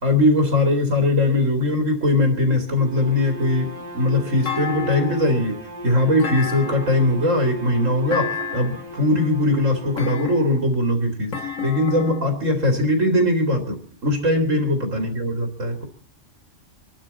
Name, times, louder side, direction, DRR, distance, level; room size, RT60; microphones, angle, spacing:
voice 1, 0.0-15.8, left 1 dB, 90° right, 5 dB, 3.1 m, -20 dB
Bowed string instrument, 2.7-10.3, right 3 dB, 35° right, 1.6 m, -36 dB
Thump thud, 4.5-5.4 6.2-7.1 8.1-8.9 10.0-10.7 11.3-12.3, left 7 dB, 80° left, 2.1 m, -31 dB
25.0 x 12.0 x 4.2 m, 0.39 s
omnidirectional pair, 1.3 m